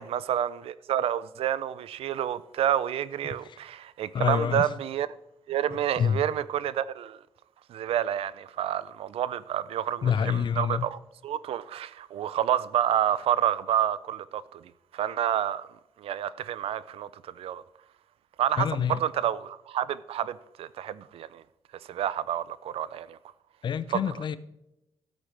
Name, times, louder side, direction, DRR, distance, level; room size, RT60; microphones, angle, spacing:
voice 1, 0.0-5.1 5.5-7.2 7.7-14.6 14.9-15.7 16.0-17.6 18.4-21.4 21.9-23.2, right 10 dB, 80° right, 0.4 m, -29 dB
voice 2, 3.2-3.6 4.1-4.7 6.0-6.2 10.0-10.9 18.6-19.0 23.6-24.4, left 8 dB, 55° left, 0.6 m, -27 dB
13.0 x 8.0 x 3.4 m
cardioid pair, 90°, 10 cm